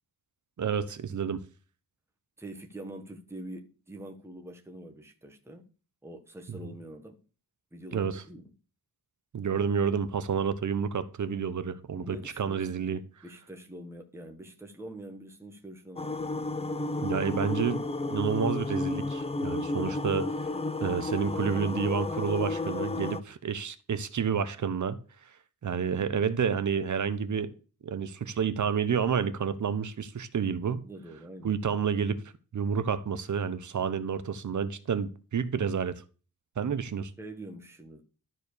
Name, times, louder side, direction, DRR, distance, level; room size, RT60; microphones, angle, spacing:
voice 1, 0.6-1.4 6.5-6.7 7.9-8.2 9.3-13.0 17.0-17.8 18.1-20.3 20.8-25.0 25.6-27.5 27.8-30.8 31.4-32.2 32.5-36.0 36.6-37.1, right 6 dB, 55° right, 1.0 m, -29 dB
voice 2, 2.4-5.7 6.0-7.2 7.7-8.5 11.9-16.1 22.9-23.1 30.8-31.6 37.2-38.0, right 1 dB, 5° right, 1.4 m, -45 dB
sound 1, 16.0-23.2, left 2 dB, 15° left, 0.6 m, -32 dB
13.0 x 4.6 x 6.7 m
wide cardioid pair, 135°, 36 cm